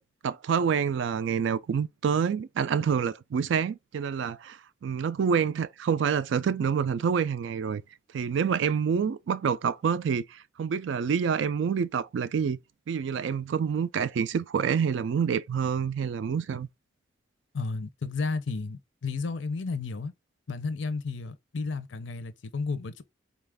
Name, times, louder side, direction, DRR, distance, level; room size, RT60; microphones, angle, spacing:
voice 1, 0.2-7.8 8.1-12.6 12.9-16.7, right 6 dB, 70° right, 0.3 m, -27 dB
voice 2, 17.5-20.1 20.5-23.0, left 4 dB, 75° left, 0.5 m, -32 dB
4.0 x 2.4 x 3.4 m
head